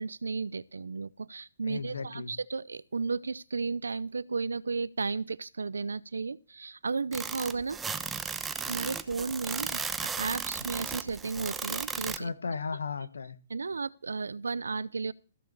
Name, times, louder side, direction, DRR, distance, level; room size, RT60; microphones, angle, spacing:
voice 1, 0.0-7.8 8.7-12.3 13.5-15.1, right 4 dB, 90° right, 0.6 m, -34 dB
voice 2, 1.7-2.3 12.2-13.4, left 5 dB, 85° left, 1.2 m, -35 dB
sound 1, 7.1-12.2, right 5 dB, 10° right, 0.9 m, -35 dB
14.5 x 6.8 x 6.7 m
hypercardioid pair, 135°, 0 cm